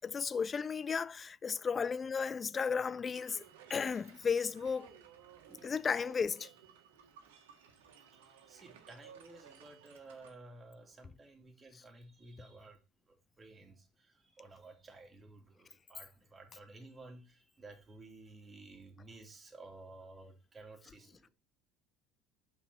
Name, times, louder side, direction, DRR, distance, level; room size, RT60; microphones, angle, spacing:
voice 1, 0.0-3.4 3.7-4.9 5.6-6.5, left 6 dB, 30° left, 0.4 m, -34 dB
sound 1, 3.1-10.3, right 8 dB, 75° right, 1.6 m, -58 dB
voice 2, 8.1-12.8 13.1-21.3, right 2 dB, 25° right, 2.7 m, -54 dB
6.8 x 5.8 x 5.5 m
hypercardioid pair, 70°, 0 cm